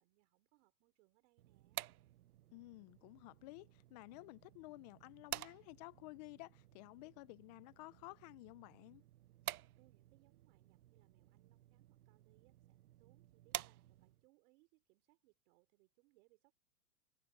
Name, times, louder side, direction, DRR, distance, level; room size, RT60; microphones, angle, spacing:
voice 1, 0.0-1.8 9.7-16.5, right 24 dB, 45° right, 4.7 m, -74 dB
sound 1, 1.4-14.3, right 14 dB, 70° right, 1.0 m, -51 dB
voice 2, 2.5-9.0, left 23 dB, 30° left, 0.5 m, -54 dB
hypercardioid pair, 135°, 46 cm